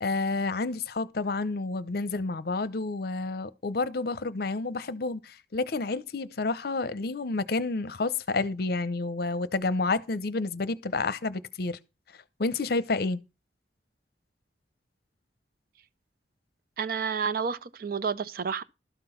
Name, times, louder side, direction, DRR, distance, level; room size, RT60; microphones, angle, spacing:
voice 1, 0.0-11.8 12.4-13.2, left 3 dB, 60° left, 0.7 m, -29 dB
voice 2, 16.8-18.6, right 6 dB, 55° right, 0.5 m, -30 dB
12.5 x 6.0 x 5.7 m
head